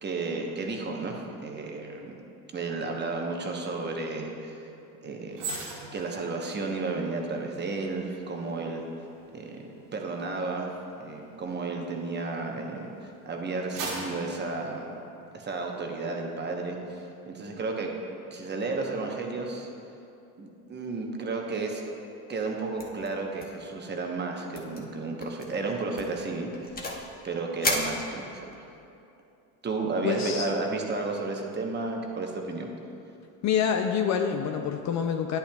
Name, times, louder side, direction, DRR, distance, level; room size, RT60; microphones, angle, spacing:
voice 1, 0.0-2.1 2.5-4.6 5.0-5.4 5.9-8.8 9.3-9.6 9.9-10.7 11.0-14.9 15.3-17.9 18.3-19.7 20.4-21.8 22.3-26.5 27.2-28.6 29.6-32.7, right 3 dB, 25° right, 1 dB, 0.9 m, -32 dB
sound 1, 5.3-12.7 13.2-15.6 15.9-16.2, right 3 dB, 85° right, 1.6 m, -42 dB
sound 2, 22.8-23.1 23.4-23.7 23.9-24.0 24.5-24.8 25.2-25.5 26.0-27.1 27.6-28.6, left 2 dB, 20° left, 1.0 m, -33 dB
voice 2, 30.0-30.5 33.4-35.4, left 7 dB, 45° left, 5 dB, 0.4 m, -27 dB
9.9 x 8.6 x 2.3 m, 2.7 s
supercardioid pair, 100°, 43 cm